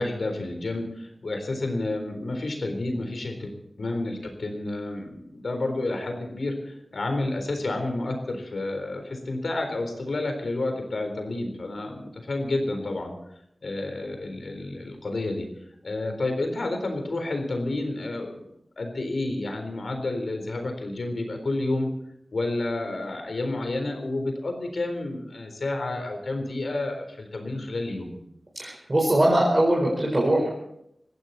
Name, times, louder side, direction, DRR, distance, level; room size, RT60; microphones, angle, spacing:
voice 1, 0.0-13.1 13.6-15.5 15.8-18.4 18.8-21.9 22.3-28.1, left 2 dB, 85° left, 5 dB, 4.0 m, -30 dB
voice 2, 28.6-30.6, right 1 dB, 35° right, -3 dB, 4.7 m, -21 dB
21.0 x 15.5 x 4.3 m, 0.78 s
wide cardioid pair, 85°, 0 cm